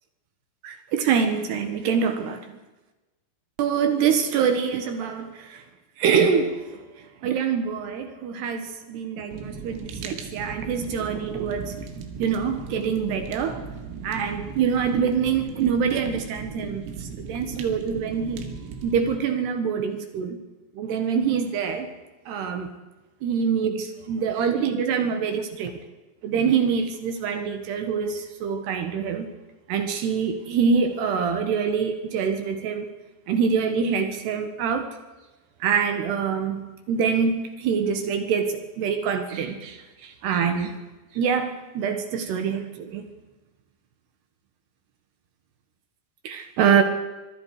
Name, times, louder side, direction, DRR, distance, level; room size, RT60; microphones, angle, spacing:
voice 1, 0.6-2.5 3.6-5.6 6.0-11.8 12.2-13.6 14.0-18.5 18.8-20.4 20.7-21.9 22.3-22.7 23.2-25.8 26.2-29.3 29.7-32.9 33.3-35.0 35.6-40.8 41.1-43.1 46.2-46.8, right 6 dB, 65° right, 3.1 m, -25 dB
Fire, 9.3-19.2, right 5 dB, 85° right, 4.8 m, -37 dB
24.5 x 23.0 x 4.9 m
omnidirectional pair, 5.9 m